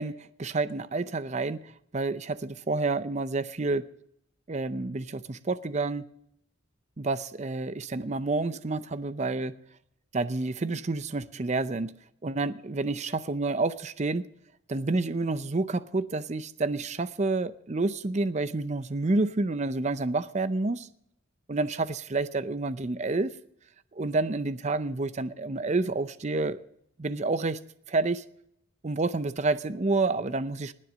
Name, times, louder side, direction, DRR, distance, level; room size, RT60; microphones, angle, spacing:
voice 1, 0.0-3.9 4.5-6.1 7.0-9.6 10.1-11.9 12.2-14.2 14.7-20.9 21.5-23.3 23.9-26.6 27.0-27.6 27.9-28.2 28.8-30.7, right 3 dB, 35° right, 0.6 m, -29 dB
20.0 x 7.6 x 6.3 m
head